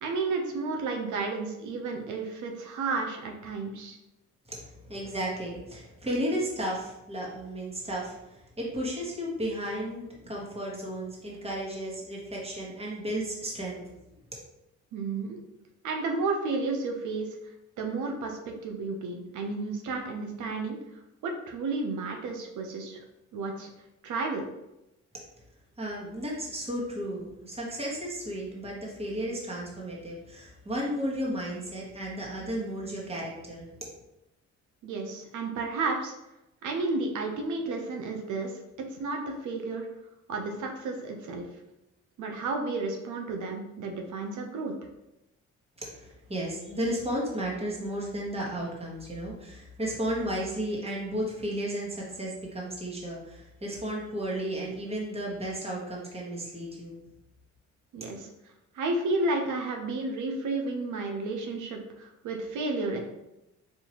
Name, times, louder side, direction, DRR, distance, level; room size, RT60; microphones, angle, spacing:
voice 1, 0.0-4.0 14.9-15.4 15.8-17.3 17.8-20.8 21.2-23.0 23.3-23.7 24.0-24.4 34.8-36.1 36.6-38.6 38.9-39.9 40.3-41.4 42.2-44.7 57.9-58.3 58.7-63.0, right 3 dB, 80° right, 2 dB, 0.8 m, -32 dB
voice 2, 4.5-14.0 25.8-33.9 45.8-57.0, right 1 dB, 20° right, -3 dB, 1.3 m, -34 dB
4.5 x 2.8 x 2.9 m, 0.90 s
cardioid pair, 90°, 30 cm